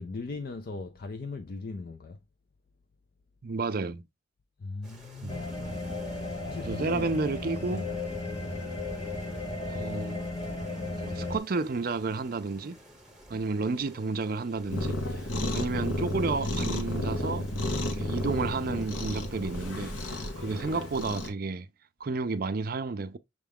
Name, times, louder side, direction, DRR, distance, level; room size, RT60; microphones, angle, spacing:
voice 1, 0.0-2.2 4.6-5.8 6.4-7.1 7.7-8.0, left 3 dB, 50° left, 0.4 m, -39 dB
voice 2, 3.4-4.0 5.2-5.4 6.6-7.9 9.7-10.2 11.0-12.8 13.3-15.2 15.5-17.5 18.0-21.7 22.0-23.2, right 3 dB, 45° right, 0.5 m, -31 dB
sound 1, 4.8-21.2, right 1 dB, ahead, 1.1 m, -52 dB
sound 2, 5.3-11.4, left 2 dB, 25° left, 1.1 m, -35 dB
Cat, 14.7-21.3, left 1 dB, 75° left, 0.9 m, -32 dB
6.3 x 2.3 x 3.4 m
head